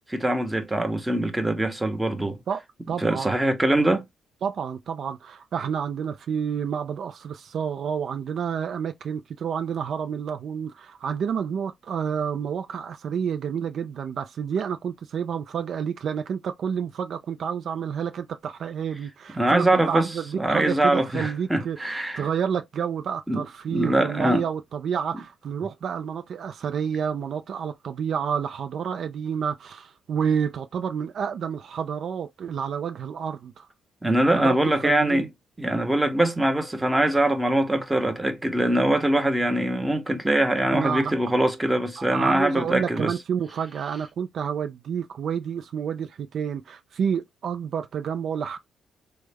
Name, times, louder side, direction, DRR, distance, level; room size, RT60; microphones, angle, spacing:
voice 1, 0.0-2.4 3.0-4.0 19.3-20.1 20.4-22.3 23.3-23.4 23.7-24.5 34.0-35.3 35.6-43.1, right 1 dB, 10° right, 0.8 m, -23 dB
voice 2, 2.9-3.3 4.4-33.7 34.3-35.3 40.7-41.1 42.0-48.6, right 7 dB, 60° right, 0.4 m, -29 dB
3.4 x 2.1 x 3.3 m
cardioid pair, 90°, 0 cm